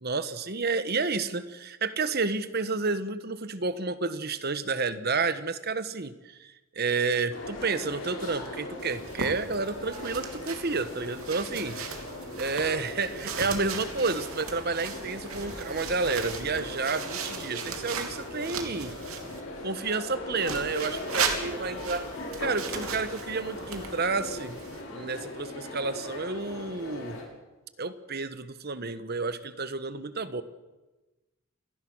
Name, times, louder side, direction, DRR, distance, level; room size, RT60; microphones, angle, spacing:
voice 1, 0.0-11.8 12.4-19.0 19.6-22.1 22.4-24.6 24.9-27.2 27.8-30.4, right 4 dB, 45° right, 12 dB, 1.3 m, -30 dB
sound 1, 7.3-27.2, left 2 dB, 70° left, 8.0 m, -39 dB
sound 2, 8.8-19.4 20.4-24.8, right 6 dB, 80° right, 3.0 m, -37 dB
28.0 x 18.5 x 6.3 m, 1.1 s
head